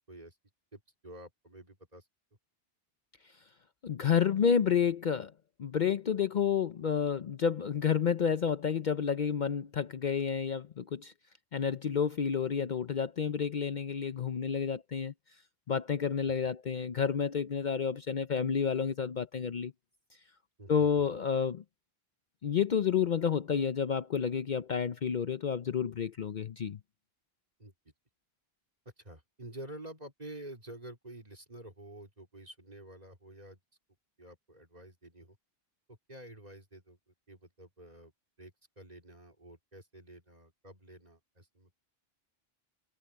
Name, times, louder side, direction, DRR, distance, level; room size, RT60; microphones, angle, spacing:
voice 1, 0.7-2.0 16.3-16.4 20.6-21.0 27.6-27.7 29.0-33.6 34.2-35.4 35.9-38.1 38.4-41.7, right 1 dB, 40° right, 3.9 m, -49 dB
voice 2, 3.8-5.3 5.6-11.1 11.5-15.1 15.7-19.7 20.7-21.6 22.4-26.8, left 7 dB, 50° left, 0.7 m, -30 dB
omnidirectional pair, 1.0 m